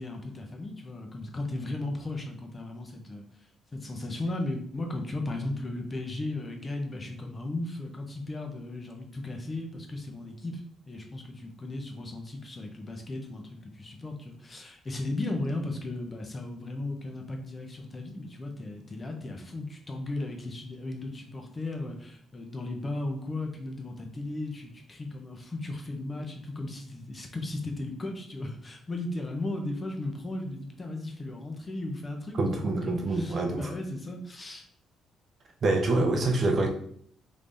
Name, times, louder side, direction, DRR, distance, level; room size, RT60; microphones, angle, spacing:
voice 1, 0.0-3.2 3.7-34.6 36.1-36.7, left 2 dB, 30° left, 2 dB, 0.7 m, -36 dB
voice 2, 32.4-33.7 35.6-36.7, right 2 dB, 50° right, 2 dB, 0.7 m, -26 dB
3.3 x 3.2 x 2.6 m, 0.63 s
cardioid pair, 90°, 0 cm